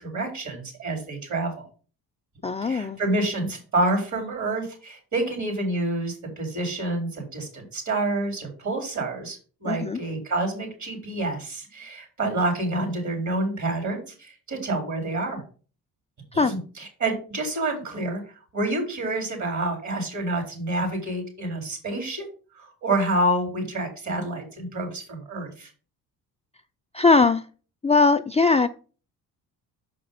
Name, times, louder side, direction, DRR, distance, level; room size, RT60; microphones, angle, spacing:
voice 1, 0.0-1.7 2.6-15.4 16.3-22.2 22.5-25.7, right 2 dB, 50° right, 3 dB, 3.9 m, -28 dB
voice 2, 2.4-3.0 9.7-10.0 16.3-16.5 26.9-27.5 27.8-28.7, left 4 dB, 20° left, 11 dB, 0.4 m, -20 dB
6.5 x 5.0 x 5.4 m, 0.38 s
cardioid pair, 85°, 36 cm